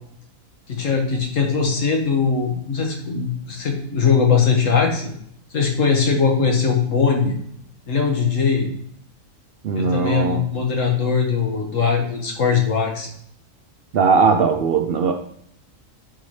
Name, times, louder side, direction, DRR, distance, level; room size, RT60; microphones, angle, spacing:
voice 1, 0.7-5.1 5.5-7.3 7.9-8.7 9.7-13.1, left 5 dB, 80° left, 0 dB, 1.7 m, -20 dB
voice 2, 9.6-10.5 13.9-15.1, right 5 dB, 60° right, 6 dB, 0.6 m, -19 dB
8.7 x 4.1 x 3.2 m, 0.68 s
omnidirectional pair, 1.3 m